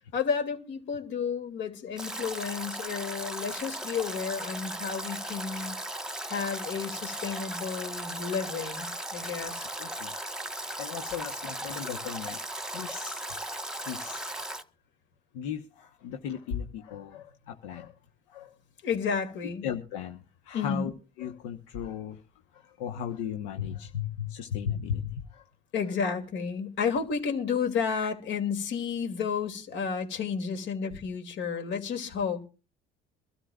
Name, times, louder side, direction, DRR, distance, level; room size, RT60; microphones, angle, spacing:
voice 1, 0.1-5.8 6.3-9.7 18.8-19.7 20.5-20.8 25.7-32.4, left 6 dB, 70° left, 2.6 m, -31 dB
Stream / Drip / Trickle dribble, 2.0-14.6, right 1 dB, 5° right, 1.3 m, -37 dB
voice 2, 9.8-10.1 10.8-12.4 12.7-13.2 13.8-14.3 15.3-17.9 18.3-18.5 19.6-20.9 21.2-22.2 22.5-25.4, left 8 dB, 90° left, 1.1 m, -36 dB
23.5 x 13.0 x 2.4 m
supercardioid pair, 95°, 20 cm